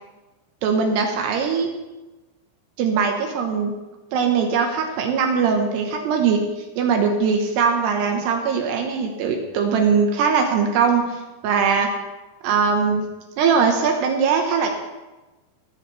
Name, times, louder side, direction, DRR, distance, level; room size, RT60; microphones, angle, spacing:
voice 1, 0.6-1.7 2.8-3.7 4.1-6.4 6.8-11.2 11.4-11.9 12.4-13.1 13.4-14.8, right 5 dB, 75° right, 3 dB, 2.6 m, -20 dB
16.5 x 8.5 x 3.2 m, 1.1 s
omnidirectional pair, 5.8 m